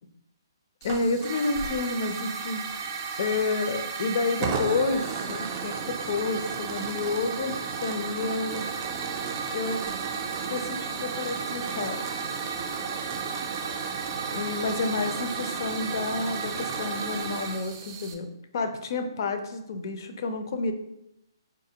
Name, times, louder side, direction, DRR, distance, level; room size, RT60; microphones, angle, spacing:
voice 1, 0.8-2.6 3.2-8.6 9.5-9.8 10.5-12.0 14.3-20.7, left 3 dB, 55° left, 8 dB, 0.4 m, -30 dB
Hiss / Fire, 0.8-18.1, right 5 dB, 35° right, 0.4 m, -33 dB
4.0 x 2.4 x 2.8 m, 0.83 s
hypercardioid pair, 150°, 2 cm